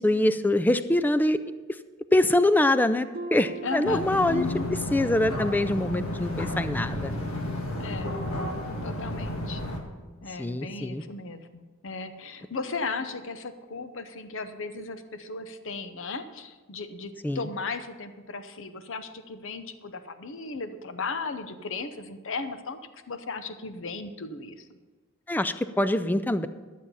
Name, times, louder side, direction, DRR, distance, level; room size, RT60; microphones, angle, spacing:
voice 1, 0.0-1.4 2.1-4.4 4.9-7.1 10.4-11.0 17.2-17.5 25.3-26.5, left 1 dB, 10° left, 12 dB, 0.3 m, -24 dB
Harp, 3.1-4.9 5.3-5.7 6.2-6.3, right 4 dB, 45° right, 1.4 m, -42 dB
voice 2, 3.6-4.7 7.8-8.1 8.8-9.6 10.2-24.7, left 4 dB, 65° left, 10 dB, 0.8 m, -36 dB
sound 1, 3.8-9.8, left 1 dB, 80° left, 1.7 m, -32 dB
12.5 x 7.4 x 5.5 m, 1.3 s
head